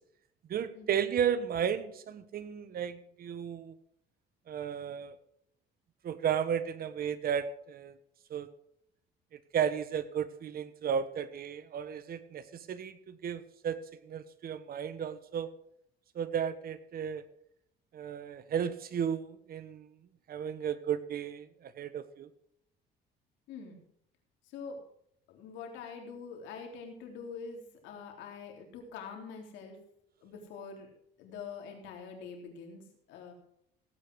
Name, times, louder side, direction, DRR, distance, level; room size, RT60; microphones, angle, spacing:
voice 1, 0.5-3.7 4.5-5.1 6.0-8.0 8.3-8.5 9.5-13.8 14.0-15.5 16.1-17.2 17.9-19.9 20.3-22.3, right 8 dB, 55° right, 13 dB, 1.2 m, -34 dB
voice 2, 23.5-23.8 24.4-24.8 25.3-29.8 30.2-30.9 31.2-33.3, left 5 dB, 85° left, 2 dB, 3.7 m, -45 dB
17.0 x 8.7 x 4.8 m, 0.72 s
cardioid pair, 105°, 19 cm